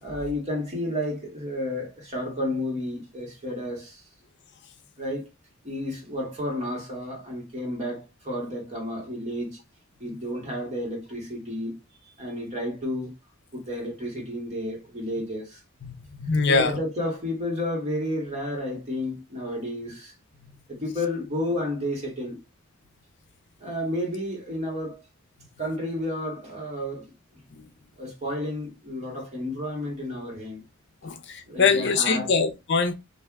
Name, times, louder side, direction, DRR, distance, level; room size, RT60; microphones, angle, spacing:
voice 1, 0.0-4.0 5.0-5.2 5.6-9.6 10.0-11.8 12.2-13.1 13.5-15.6 16.5-20.1 20.7-22.4 23.6-25.0 25.6-27.1 28.0-30.6 31.5-32.3, left 1 dB, 35° right, 1.7 m, -31 dB
voice 2, 15.8-16.8 27.5-27.6 31.0-32.9, left 5 dB, 55° left, 0.6 m, -23 dB
3.3 x 2.6 x 3.4 m
head